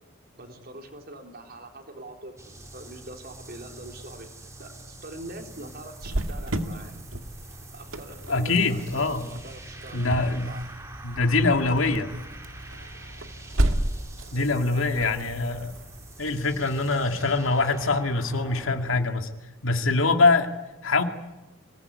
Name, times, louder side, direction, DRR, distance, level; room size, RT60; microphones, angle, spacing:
voice 1, 0.4-7.0 7.7-10.6 14.3-15.2, right 2 dB, 50° right, 4 dB, 3.8 m, -43 dB
sound 1, 2.4-19.1, right 2 dB, 15° right, 3.0 m, -45 dB
Cricket, 6.0-17.5, right 1 dB, 85° right, 2.1 m, -33 dB
voice 2, 8.3-9.3 9.9-10.5 11.0-12.1 14.3-15.7 16.2-19.3 19.6-20.5 20.8-21.0, left 3 dB, 85° left, 5 dB, 2.2 m, -23 dB
26.0 x 19.0 x 9.6 m, 1.0 s
head